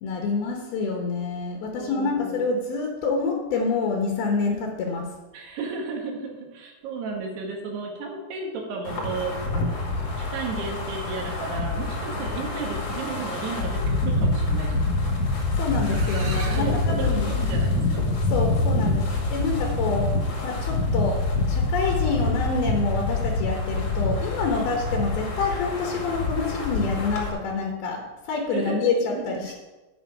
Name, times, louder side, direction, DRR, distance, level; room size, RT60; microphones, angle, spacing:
voice 1, 0.0-5.1 15.5-17.3 18.3-20.1 20.4-21.2 21.5-29.5, left 4 dB, 75° left, 0 dB, 3.0 m, -27 dB
voice 2, 1.8-2.4 5.3-9.4 10.2-15.2 16.6-18.0 24.5-24.7 28.5-29.5, right 4 dB, 85° right, 1 dB, 3.9 m, -34 dB
Wind, 8.8-27.3, left 2 dB, 45° left, 2.5 m, -26 dB
sound 1, 15.7-16.8, right 3 dB, 55° right, 2.2 m, -36 dB
10.5 x 8.9 x 4.8 m, 1.2 s
omnidirectional pair, 4.6 m